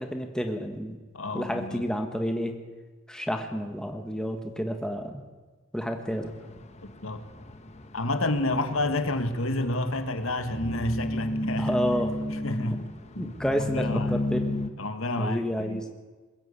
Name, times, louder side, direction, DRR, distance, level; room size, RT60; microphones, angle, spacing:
voice 1, 0.0-1.0 1.3-2.6 3.1-5.2 5.7-6.3 11.6-12.1 13.2-14.6 15.2-15.9, equal, 5° left, 4 dB, 1.6 m, -30 dB
voice 2, 1.1-1.8 6.8-7.2 7.9-11.7 12.4-12.8 13.2-13.3 13.6-14.2 14.8-15.9, left 2 dB, 80° left, 8 dB, 1.7 m, -29 dB
sound 1, 6.1-14.7, left 1 dB, 30° left, 1.2 m, -33 dB
21.5 x 15.5 x 8.4 m, 1.3 s
head